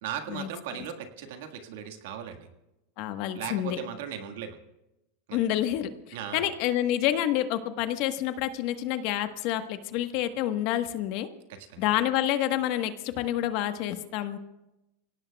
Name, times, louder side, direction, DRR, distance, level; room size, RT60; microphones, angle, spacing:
voice 1, 0.0-2.5 3.3-4.6 5.3-5.4 6.1-6.4 11.5-11.8, right 8 dB, 75° right, 6 dB, 1.6 m, -37 dB
voice 2, 3.0-3.8 5.3-11.3 11.8-14.4, left 12 dB, 60° left, 8 dB, 1.2 m, -28 dB
28.5 x 17.5 x 2.3 m, 0.96 s
supercardioid pair, 115°, 0 cm